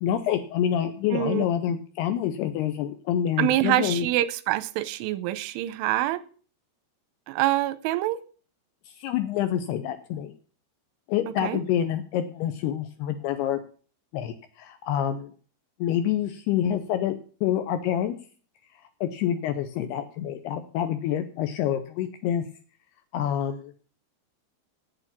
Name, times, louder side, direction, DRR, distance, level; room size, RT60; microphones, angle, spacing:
voice 1, 0.0-4.1 9.0-10.3 11.1-13.6 14.1-15.3 15.8-17.1 17.4-18.2 19.0-22.4 23.1-23.7, left 10 dB, 80° left, 2.4 m, -27 dB
voice 2, 1.1-1.4 3.4-6.2 7.3-8.2 11.4-11.6, right 15 dB, 90° right, 3.2 m, -25 dB
9.0 x 8.5 x 7.2 m
omnidirectional pair, 5.4 m